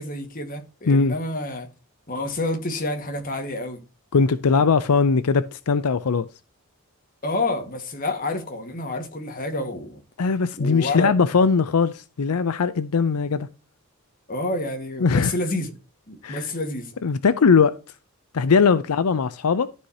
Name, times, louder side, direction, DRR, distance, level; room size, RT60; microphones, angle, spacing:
voice 1, 0.0-1.7 2.1-3.8 7.2-10.0 10.6-11.1 14.3-15.7 16.1-16.9, left 2 dB, 40° left, 1.6 m, -28 dB
voice 2, 4.1-6.3 10.2-13.5 15.0-15.3 16.2-16.5 17.0-17.7 18.3-19.7, left 5 dB, 85° left, 0.5 m, -20 dB
13.0 x 4.9 x 2.8 m
head